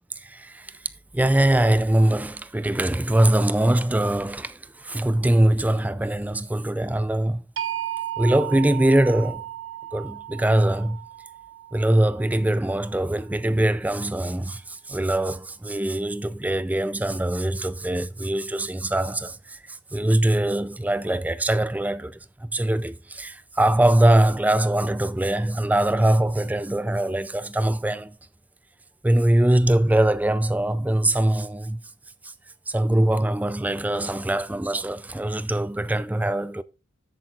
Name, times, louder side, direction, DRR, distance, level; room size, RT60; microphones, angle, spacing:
voice 1, 0.2-0.8 1.1-7.4 8.2-9.4 9.9-11.0 11.7-28.2 29.0-31.8 32.2-32.3 32.7-36.6, right 1 dB, 10° right, 0.3 m, -22 dB
sound 1, 7.6-13.5, right 12 dB, 85° right, 1.0 m, -35 dB
10.0 x 8.5 x 2.4 m
head